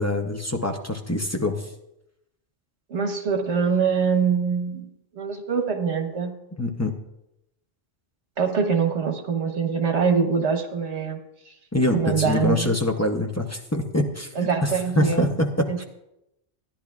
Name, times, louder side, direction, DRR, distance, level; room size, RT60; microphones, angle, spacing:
voice 1, 0.0-1.6 6.6-6.9 11.7-14.3 14.6-15.8, left 1 dB, 20° left, 3 dB, 0.5 m, -24 dB
voice 2, 2.9-4.9 5.2-6.3 8.4-11.2 11.9-12.7 14.4-15.3 15.7-15.8, right 6 dB, 75° right, 4 dB, 1.4 m, -24 dB
15.0 x 10.5 x 2.4 m, 0.85 s
omnidirectional pair, 1.2 m